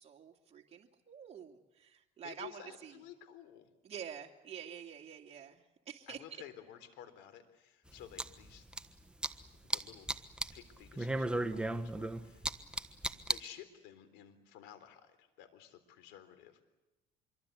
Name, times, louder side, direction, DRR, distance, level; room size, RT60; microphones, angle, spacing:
voice 1, 0.0-2.9 3.8-5.6 5.9-6.2, right 8 dB, 35° right, 1 dB, 2.6 m, -48 dB
voice 2, 2.2-3.7 6.1-8.7 9.6-10.1 10.5-12.5 13.1-16.7, left 10 dB, 80° left, 11 dB, 3.8 m, -53 dB
sound 1, 7.9-8.8 9.2-9.8 10.1-10.6 10.8-13.4, right 1 dB, 5° right, 1.3 m, -35 dB
26.0 x 23.5 x 8.3 m, 1.0 s
supercardioid pair, 95°, 19 cm